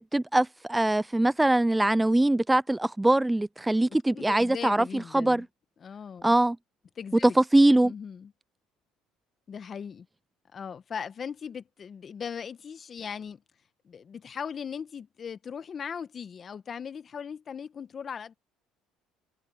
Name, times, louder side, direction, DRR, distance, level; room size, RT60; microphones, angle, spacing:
voice 1, 0.0-5.4 6.2-6.6 7.2-7.9, right 1 dB, 10° right, 0.4 m, -22 dB
voice 2, 4.1-5.4 5.8-6.3 7.0-7.4 7.8-8.3 9.5-10.1 10.5-13.4 13.8-18.3, left 7 dB, 40° left, 1.4 m, -38 dB
supercardioid pair, 85°, 0 cm